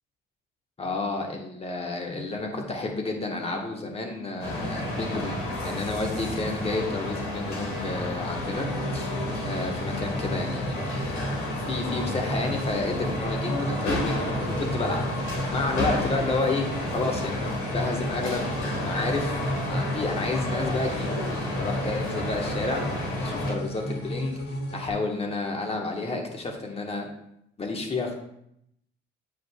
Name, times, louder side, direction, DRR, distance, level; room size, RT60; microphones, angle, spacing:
voice 1, 0.8-9.1 9.4-11.2 11.7-19.4 19.7-21.2 21.5-22.8 23.2-24.4 24.7-27.1 27.6-28.1, left 3 dB, 30° left, 1 dB, 1.2 m, -31 dB
sound 1, 4.4-23.5, left 1 dB, 80° left, 2.0 m, -31 dB
sound 2, 8.3-24.9, equal, 55° left, 1.5 m, -34 dB
8.0 x 5.1 x 2.3 m, 0.76 s
cardioid pair, 90°, 21 cm